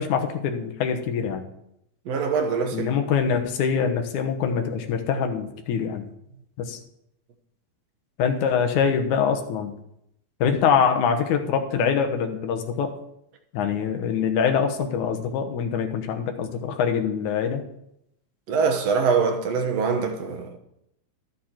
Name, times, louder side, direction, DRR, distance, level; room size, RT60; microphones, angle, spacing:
voice 1, 0.0-1.4 2.7-6.1 6.6-6.8 8.2-9.7 10.4-12.9 13.5-17.6, left 7 dB, 90° left, 2.6 m, -24 dB
voice 2, 2.1-2.9 18.5-20.6, right 5 dB, 65° right, 2.0 m, -23 dB
13.0 x 8.2 x 4.4 m
omnidirectional pair, 3.3 m